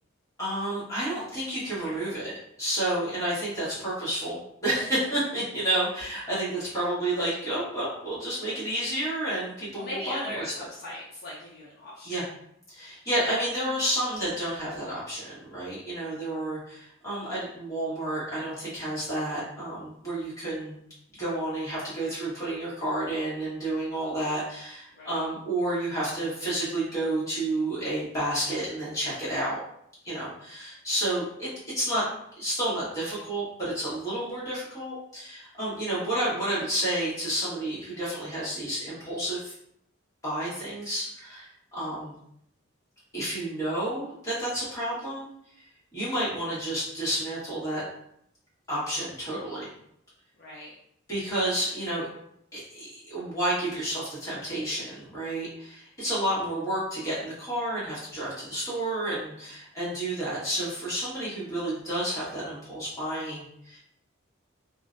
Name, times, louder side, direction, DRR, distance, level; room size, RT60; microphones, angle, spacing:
voice 1, 0.4-10.4 12.0-12.2 12.7-20.8 21.2-29.6 30.0-31.5 31.7-32.1 32.4-39.5 40.2-42.1 43.1-45.3 45.9-47.8 48.7-49.7 51.1-52.1 52.5-63.8, right 1 dB, 15° left, -9 dB, 1.2 m, -30 dB
voice 2, 1.8-2.1 6.4-6.8 9.8-12.2 24.9-25.2 50.4-50.7, left 1 dB, 50° left, -5 dB, 0.4 m, -40 dB
2.5 x 2.1 x 2.5 m, 0.73 s
head